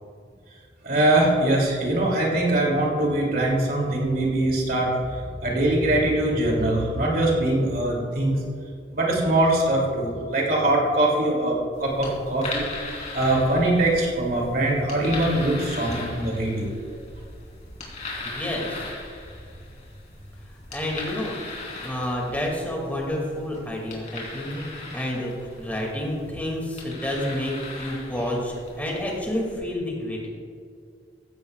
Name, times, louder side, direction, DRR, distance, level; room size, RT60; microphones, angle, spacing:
voice 1, 0.8-5.0 5.4-8.4 8.9-12.7 13.1-16.7, right 1 dB, 55° right, -2 dB, 2.8 m, -22 dB
Vaporizer (inhaling), 11.7-29.6, left 3 dB, 40° left, 3.6 m, -39 dB
voice 2, 18.2-18.9 20.5-21.4 21.8-30.3, left 1 dB, 10° left, -2 dB, 2.4 m, -29 dB
16.0 x 15.5 x 2.4 m, 2.3 s
head